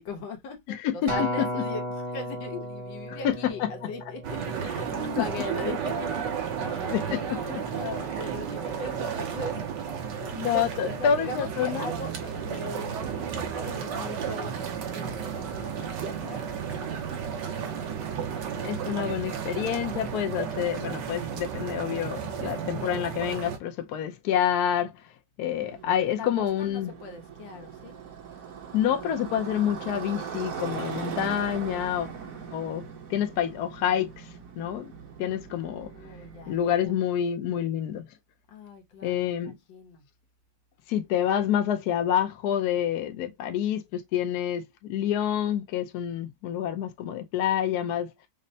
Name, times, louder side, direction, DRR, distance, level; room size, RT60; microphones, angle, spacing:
voice 1, 0.0-9.6 10.4-14.6 14.9-18.3 26.1-28.0 35.5-37.0 38.5-40.1, left 3 dB, 85° left, 1.7 m, -40 dB
Acoustic guitar, 1.1-5.5 6.1-6.3, equal, 20° right, 0.8 m, -34 dB
sound 1, 4.2-23.6, right 7 dB, 75° right, 1.4 m, -33 dB
voice 2, 6.9-7.2 7.5-7.6 10.2-11.9 18.6-24.9 25.4-26.9 28.7-32.1 32.5-32.8 33.1-34.9 35.2-35.9 36.5-38.0 39.0-39.5 40.9-48.1, left 9 dB, 70° left, 1.0 m, -28 dB
Motorcycle, 25.4-36.9, right 7 dB, 55° right, 1.1 m, -40 dB
5.2 x 2.1 x 2.6 m
omnidirectional pair, 2.0 m